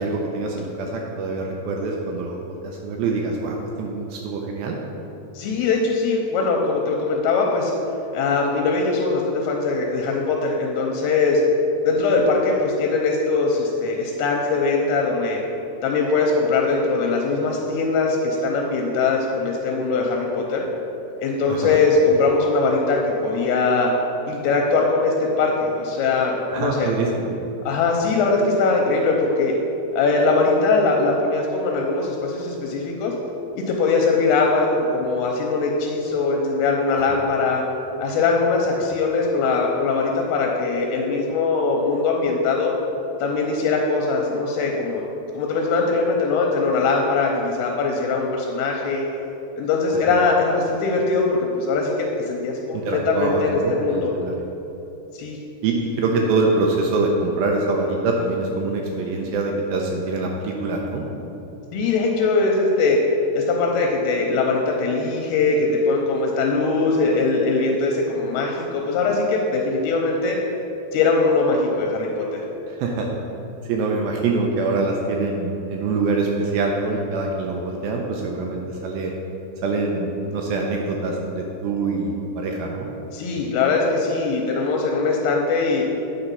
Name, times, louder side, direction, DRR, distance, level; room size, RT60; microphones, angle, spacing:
voice 1, 0.0-4.8 21.5-21.8 26.5-27.4 37.0-37.1 50.1-50.2 52.7-54.3 55.6-61.1 72.7-73.1 73.7-79.1 79.6-82.9, right 3 dB, 80° right, 0 dB, 2.1 m, -24 dB
voice 2, 5.3-7.7 8.1-11.4 11.8-15.4 15.8-20.7 21.2-23.9 24.3-26.9 27.7-29.5 30.0-33.1 33.6-37.6 38.0-42.7 43.2-45.0 45.3-49.0 49.6-51.9 52.3-54.1 55.2-55.4 61.7-63.0 63.3-70.4 70.9-72.4 83.1-85.8, left 3 dB, 85° left, 0 dB, 2.5 m, -21 dB
8.9 x 4.3 x 5.3 m, 3.0 s
omnidirectional pair, 4.8 m